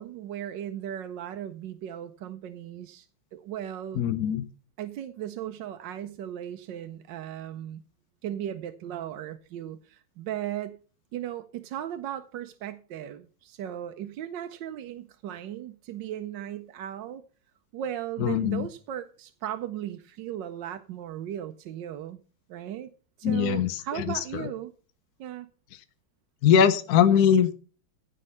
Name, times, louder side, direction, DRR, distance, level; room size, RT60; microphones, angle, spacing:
voice 1, 0.0-3.1 3.3-4.1 4.8-7.8 8.2-10.8 11.1-17.2 17.7-22.2 22.5-22.9 23.2-24.7 25.2-25.5, right 11 dB, 70° right, 8 dB, 1.3 m, -36 dB
voice 2, 4.0-4.4 18.2-18.7 23.2-24.4 26.4-27.5, left 8 dB, 60° left, 12 dB, 1.1 m, -22 dB
15.5 x 5.5 x 5.5 m, 0.38 s
omnidirectional pair, 2.2 m